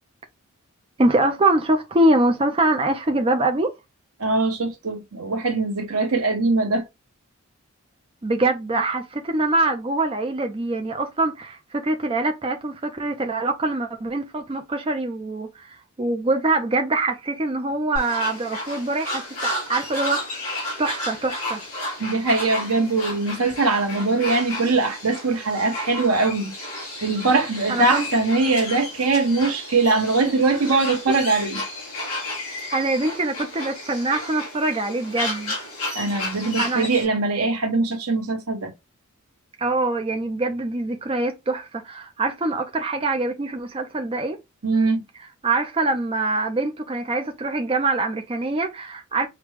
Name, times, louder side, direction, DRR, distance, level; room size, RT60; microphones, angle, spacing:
voice 1, 1.0-3.7 8.2-21.6 27.7-28.1 31.1-31.2 32.7-35.6 36.6-36.9 39.6-44.4 45.2-49.3, right 2 dB, 25° right, 0.5 m, -24 dB
voice 2, 4.2-6.8 22.0-26.5 27.0-31.6 35.9-38.7 44.6-45.0, right 3 dB, 75° right, 1.0 m, -22 dB
sound 1, 18.0-37.1, left 1 dB, 75° left, 2.8 m, -32 dB
5.0 x 2.2 x 3.1 m
head